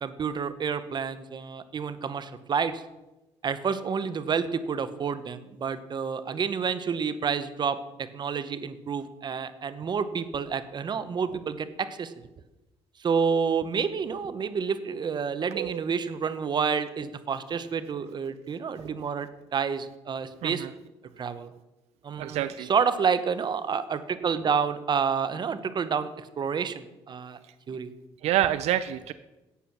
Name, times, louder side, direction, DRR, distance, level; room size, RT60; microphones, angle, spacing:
voice 1, 0.0-2.8 3.4-12.3 13.0-20.7 21.2-21.5 22.0-27.4 27.7-27.9, right 6 dB, 45° right, 13 dB, 0.9 m, -29 dB
voice 2, 22.2-22.7 28.2-29.1, right 12 dB, 80° right, 13 dB, 0.5 m, -27 dB
11.5 x 8.3 x 6.0 m, 1.0 s
cardioid pair, 95°, 11 cm